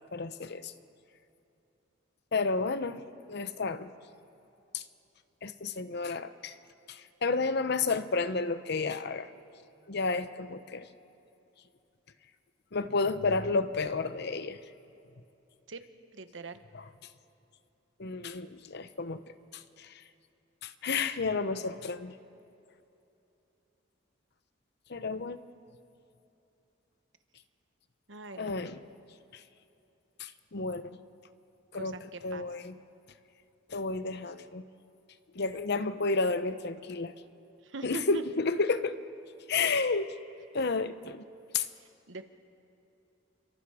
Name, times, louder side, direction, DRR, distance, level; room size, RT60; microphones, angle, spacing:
voice 1, 0.1-0.7 2.3-3.0 3.3-3.9 4.7-4.8 5.4-6.5 6.9-9.3 9.9-10.9 12.7-14.6 16.7-16.9 18.0-19.2 19.5-19.9 20.6-22.1 24.9-25.4 28.3-28.8 30.2-31.0 31.7-32.8 33.7-34.6 35.3-37.1 37.8-39.0 39.5-40.2 40.5-41.2 41.5-41.7, left 4 dB, 60° left, 12 dB, 0.8 m, -31 dB
voice 2, 16.1-16.6 28.1-28.5 31.7-32.7 37.6-38.2 42.1-42.3, right 3 dB, 70° right, 9 dB, 1.2 m, -42 dB
28.5 x 24.0 x 5.0 m, 2.9 s
head